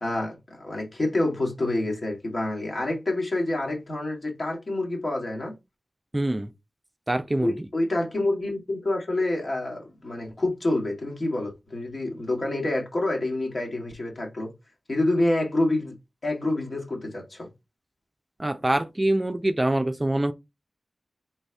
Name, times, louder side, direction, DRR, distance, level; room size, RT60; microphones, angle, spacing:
voice 1, 0.0-5.5 7.4-14.5 14.9-15.9 16.2-17.5, left 2 dB, 55° left, 1.8 m, -27 dB
voice 2, 6.1-6.5 7.1-7.7 18.4-20.3, right 1 dB, 25° right, 0.5 m, -25 dB
4.0 x 3.3 x 3.4 m
wide cardioid pair, 70°, 0 cm